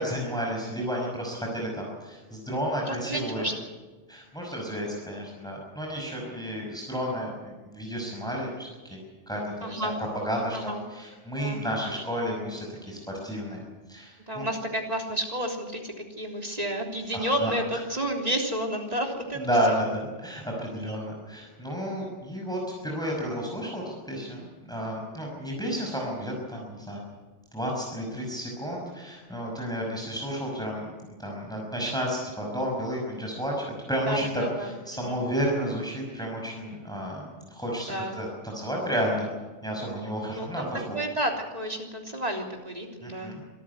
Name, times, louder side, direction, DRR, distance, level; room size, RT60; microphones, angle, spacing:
voice 1, 0.0-3.5 4.1-9.0 9.3-9.9 10.2-13.6 13.9-14.5 17.1-17.5 19.4-27.0 27.5-30.9 31.2-39.3 39.6-41.0 43.0-43.4, equal, 5° left, -1 dB, 5.8 m, -31 dB
voice 2, 2.8-3.5 9.6-10.0 10.5-10.8 11.4-11.6 14.3-19.4 20.7-21.0 34.1-35.2 37.9-38.2 40.3-43.3, right 1 dB, 35° right, 1 dB, 3.6 m, -31 dB
26.0 x 14.0 x 9.6 m, 1.3 s
omnidirectional pair, 1.2 m